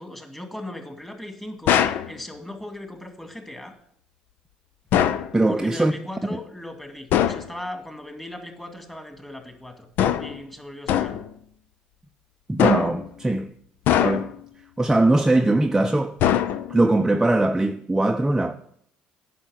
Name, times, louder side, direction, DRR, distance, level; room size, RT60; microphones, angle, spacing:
voice 1, 0.0-3.7 5.5-9.9 10.2-11.3, left 1 dB, 10° left, 2.3 m, -38 dB
sound 1, 1.7-2.1 4.9-5.3 7.1-7.5 10.0-10.4 10.9-11.3 12.6-13.1 13.9-14.5 16.2-16.9, left 10 dB, 65° left, 0.6 m, -21 dB
voice 2, 5.3-5.9 12.5-13.5 14.0-14.3 14.8-16.2 16.7-18.5, right 2 dB, 10° right, 0.6 m, -20 dB
9.7 x 5.9 x 7.8 m
hypercardioid pair, 60°, 4 cm